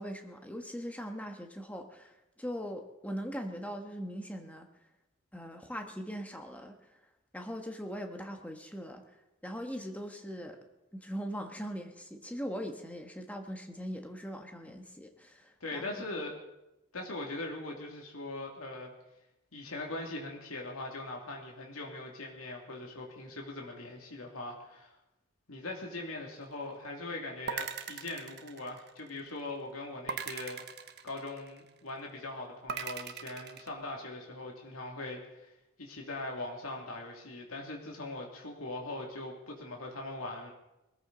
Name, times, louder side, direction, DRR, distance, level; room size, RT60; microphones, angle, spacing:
voice 1, 0.0-4.7 5.3-7.0 7.3-9.2 9.4-10.6 10.9-15.9, equal, 5° left, 4 dB, 1.4 m, -40 dB
voice 2, 15.6-16.3 16.9-18.9 19.5-24.9 25.5-35.5 35.8-40.5, left 2 dB, 85° left, 0 dB, 2.5 m, -41 dB
sound 1, 27.5-29.2 30.1-31.7 32.7-33.7, right 6 dB, 50° right, 1.0 m, -39 dB
21.5 x 14.0 x 4.0 m, 0.93 s
head